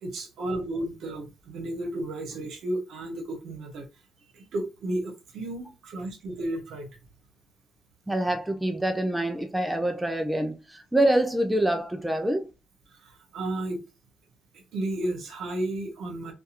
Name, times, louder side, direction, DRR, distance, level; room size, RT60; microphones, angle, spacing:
voice 1, 0.0-3.9 4.3-7.0 12.9-13.9 14.7-16.3, right 1 dB, 75° right, 0.9 m, -33 dB
voice 2, 8.1-12.5, right 1 dB, 5° right, 0.4 m, -26 dB
2.7 x 2.4 x 2.4 m
cardioid pair, 90°, 0 cm